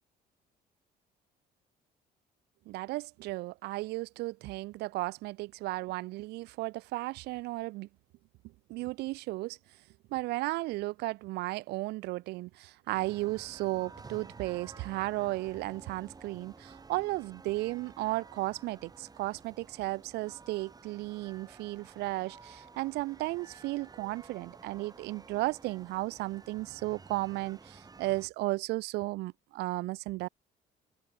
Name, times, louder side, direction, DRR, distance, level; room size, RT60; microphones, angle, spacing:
voice 1, 2.7-7.9 8.7-9.6 10.1-30.3, right 20 dB, 80° right, 0.4 m, -34 dB
sound 1, 12.9-28.3, right 4 dB, 20° right, 4.3 m, -52 dB
cardioid pair, 110°, 17 cm